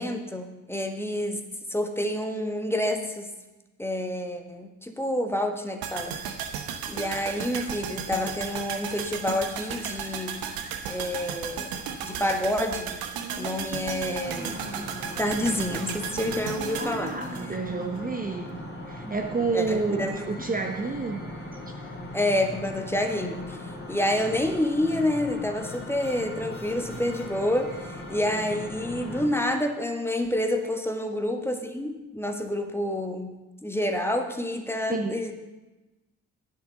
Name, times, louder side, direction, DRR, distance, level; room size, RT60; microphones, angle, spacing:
voice 1, 0.0-1.4 1.7-3.3 3.8-6.2 6.9-10.4 10.9-13.0 13.4-14.6 15.2-17.1 19.1-19.2 19.5-20.2 22.1-33.4 33.6-35.3, left 1 dB, 5° left, 4 dB, 1.4 m, -28 dB
sound 1, 5.8-18.0 18.3-18.4, right 7 dB, 60° right, 1.1 m, -35 dB
sound 2, 13.1-19.0, right 5 dB, 45° right, 1.4 m, -42 dB
sound 3, 14.2-29.3, left 1 dB, 30° left, 3.1 m, -39 dB
voice 2, 16.8-21.2 34.9-35.2, right 4 dB, 20° right, 3 dB, 1.1 m, -30 dB
12.5 x 9.9 x 3.9 m, 1.1 s
figure-of-eight pair, 45°, 41 cm